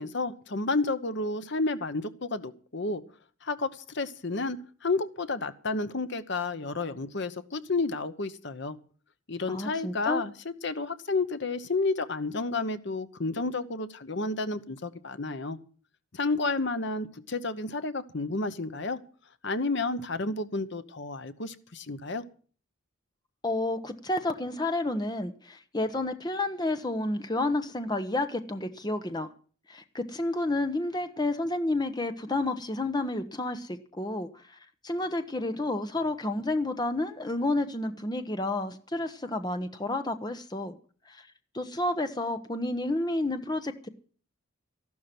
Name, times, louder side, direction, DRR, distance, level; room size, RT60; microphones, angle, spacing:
voice 1, 0.0-3.0 3.4-8.8 9.3-15.6 16.1-19.0 19.4-22.2, left 3 dB, 55° left, 11 dB, 1.0 m, -31 dB
voice 2, 9.5-10.2 23.4-29.3 29.7-34.6 34.8-40.8 41.1-41.3 41.5-43.9, left 2 dB, 20° left, 8 dB, 1.0 m, -30 dB
14.0 x 12.0 x 6.0 m, 0.42 s
head